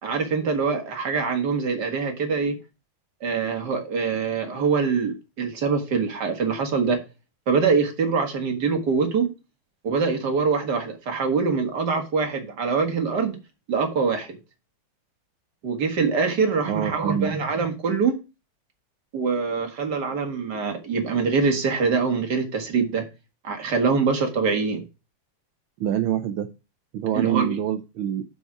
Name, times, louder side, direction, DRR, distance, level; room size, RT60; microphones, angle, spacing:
voice 1, 0.0-2.6 3.2-7.0 7.5-9.3 9.8-13.4 13.7-14.4 15.6-18.1 19.1-23.0 23.4-24.8 27.2-27.5, right 5 dB, 55° right, 4 dB, 2.3 m, -24 dB
voice 2, 16.7-17.4 25.8-26.5 26.9-28.2, right 10 dB, 85° right, 7 dB, 1.6 m, -25 dB
7.2 x 5.6 x 5.9 m, 0.28 s
omnidirectional pair, 2.2 m